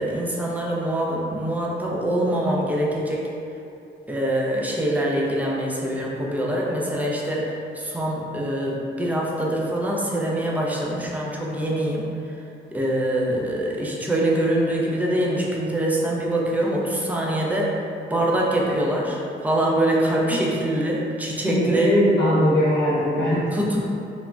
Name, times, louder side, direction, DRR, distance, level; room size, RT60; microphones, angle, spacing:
voice 1, 0.0-3.3 4.1-12.0 12.7-17.7 18.1-21.9 23.5-23.8, right 1 dB, 10° right, -4 dB, 0.4 m, -24 dB
voice 2, 21.4-23.6, equal, 70° left, -9 dB, 0.8 m, -20 dB
3.2 x 2.1 x 2.4 m, 2.6 s
cardioid pair, 90°, 20 cm